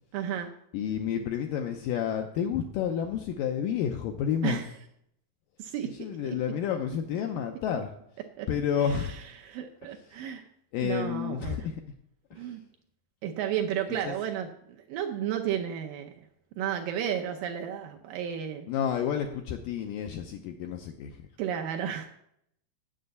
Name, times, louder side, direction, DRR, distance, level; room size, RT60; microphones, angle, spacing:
voice 1, 0.1-0.5 4.4-4.7 5.6-5.9 6.2-6.4 8.4-8.5 8.8-10.4 10.8-11.7 12.4-12.6 13.2-16.1 16.6-18.7 21.4-22.1, right 9 dB, 75° right, 3 dB, 2.1 m, -33 dB
voice 2, 0.7-4.6 6.0-7.9 8.5-9.1 10.7-11.8 12.3-12.4 14.0-14.1 18.7-21.1, left 8 dB, 80° left, 5 dB, 1.9 m, -30 dB
7.6 x 6.7 x 8.1 m, 0.74 s
omnidirectional pair, 4.6 m